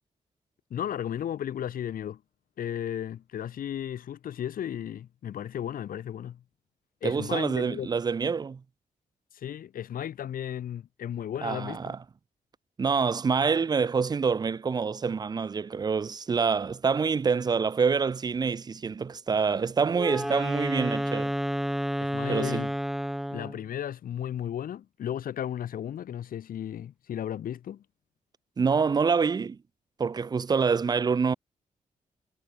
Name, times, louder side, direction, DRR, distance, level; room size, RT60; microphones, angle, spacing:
voice 1, 0.7-2.2 2.6-6.4 7.0-7.9 9.3-11.9 22.0-22.7 23.3-27.8, left 10 dB, 75° left, 1.1 m, -34 dB
voice 2, 7.0-8.6 11.4-12.0 12.8-21.3 22.3-22.7 28.6-29.6 30.0-31.3, right 5 dB, 30° right, 0.3 m, -26 dB
Wind instrument woodwind instrument, 19.9-23.6, equal, ahead, 0.7 m, -30 dB
cardioid pair, 55°, 15 cm